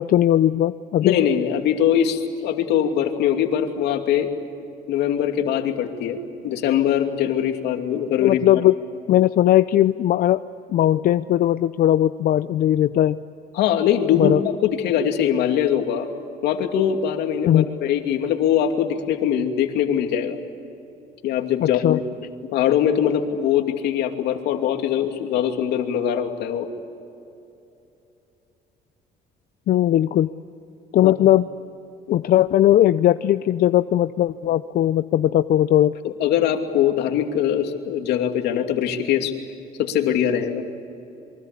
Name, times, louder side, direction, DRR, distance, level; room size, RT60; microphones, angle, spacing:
voice 1, 0.0-1.1 8.2-8.7 9.1-10.4 10.7-13.2 14.1-14.4 17.4-17.7 21.6-22.0 29.7-30.3 30.9-31.5 32.1-35.9, left 12 dB, 60° left, 12 dB, 0.6 m, -18 dB
voice 2, 1.0-4.3 4.9-8.6 13.5-16.1 16.4-20.4 21.2-22.0 22.4-26.7 31.0-31.1 32.1-32.2 36.0-39.3 39.8-40.6, left 9 dB, 80° left, 5 dB, 2.7 m, -22 dB
27.0 x 24.0 x 8.4 m, 2.7 s
cardioid pair, 110°, 17 cm